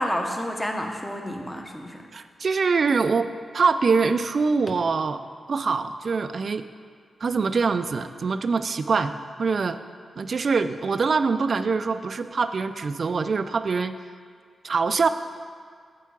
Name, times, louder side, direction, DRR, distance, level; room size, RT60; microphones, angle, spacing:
voice 1, 0.0-2.0, equal, 10° left, 3 dB, 1.0 m, -29 dB
voice 2, 2.1-5.2 5.5-6.6 7.2-9.1 9.4-9.8 10.2-14.0 14.6-15.1, right 4 dB, 55° right, 10 dB, 0.4 m, -24 dB
8.2 x 4.7 x 7.4 m, 2.1 s
cardioid pair, 90°, 0 cm